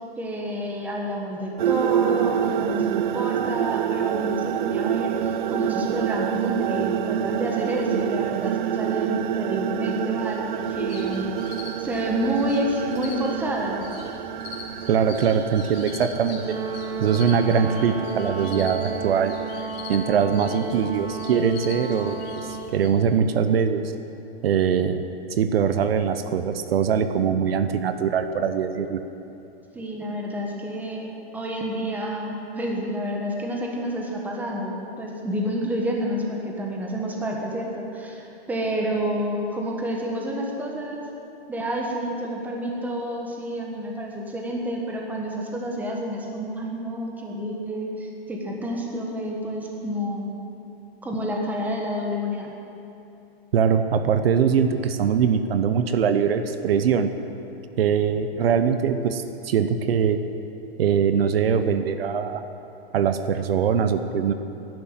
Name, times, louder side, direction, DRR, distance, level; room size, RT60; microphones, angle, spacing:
voice 1, 0.2-11.3 11.8-13.8 29.7-31.1 31.3-41.1 41.5-50.3 51.0-52.5 60.8-60.9, equal, 5° right, -1 dB, 1.4 m, -29 dB
sound 1, 1.6-19.6, right 10 dB, 50° right, 0.5 m, -28 dB
sound 2, 10.5-22.9, left 4 dB, 40° left, 3.3 m, -42 dB
voice 2, 14.9-16.4 17.0-19.4 19.9-23.9 24.4-25.0 25.3-29.0 53.5-57.1 57.8-60.2 60.8-62.4 62.9-64.3, right 7 dB, 65° right, 9 dB, 1.0 m, -22 dB
Brass instrument, 16.4-22.8, right 4 dB, 90° right, 2.6 m, -33 dB
13.0 x 11.0 x 9.0 m, 2.9 s
hypercardioid pair, 165°, 32 cm